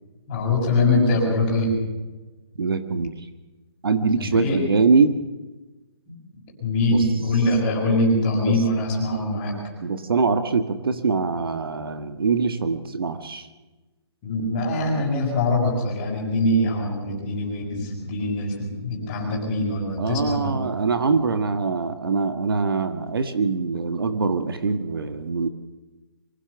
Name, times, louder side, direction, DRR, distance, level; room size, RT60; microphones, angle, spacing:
voice 1, 0.3-1.8 4.0-4.6 6.1-6.2 6.6-9.6 14.2-20.6, left 1 dB, 20° left, -3 dB, 6.5 m, -23 dB
voice 2, 2.6-3.1 3.8-5.2 6.9-7.0 8.4-8.6 9.8-13.5 20.0-25.5, right 4 dB, 55° right, 9 dB, 1.6 m, -23 dB
24.5 x 16.0 x 6.9 m, 1.2 s
hypercardioid pair, 175°, 14 cm